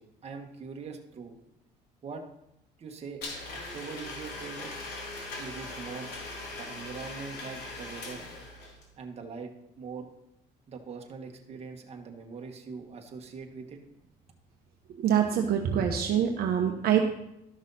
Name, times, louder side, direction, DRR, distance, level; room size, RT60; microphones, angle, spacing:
voice 1, 0.0-1.4 2.0-2.2 2.8-3.2 3.5-4.7 5.4-6.1 6.6-8.2 9.0-9.5 9.8-10.1 10.7-13.8, right 5 dB, 40° right, 3 dB, 1.5 m, -42 dB
Domestic sounds home sounds, 3.2-8.9, left 2 dB, 70° left, 2.9 m, -40 dB
voice 2, 14.9-17.0, right 9 dB, 65° right, 3 dB, 0.9 m, -25 dB
12.5 x 6.2 x 4.2 m, 0.83 s
cardioid pair, 110°, 17 cm